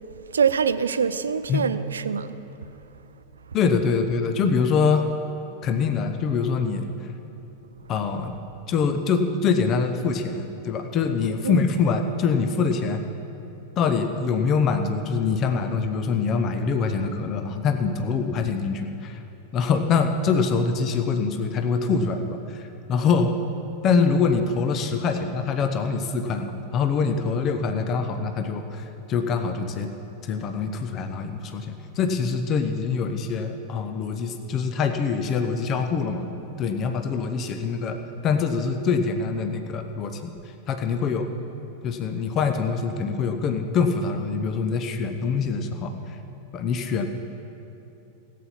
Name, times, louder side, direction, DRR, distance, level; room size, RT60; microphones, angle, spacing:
voice 1, 0.3-2.3 11.4-11.6, right 6 dB, 70° right, 14 dB, 0.5 m, -24 dB
voice 2, 3.5-5.1 5.6-7.1 7.9-8.3 8.7-13.0 13.8-19.2 19.5-23.4 23.8-29.9 30.2-36.3 36.6-41.3 41.8-46.2 46.5-47.1, left 5 dB, 35° left, 6 dB, 0.8 m, -24 dB
16.5 x 8.4 x 5.9 m, 3.0 s
figure-of-eight pair, 90°, 0 cm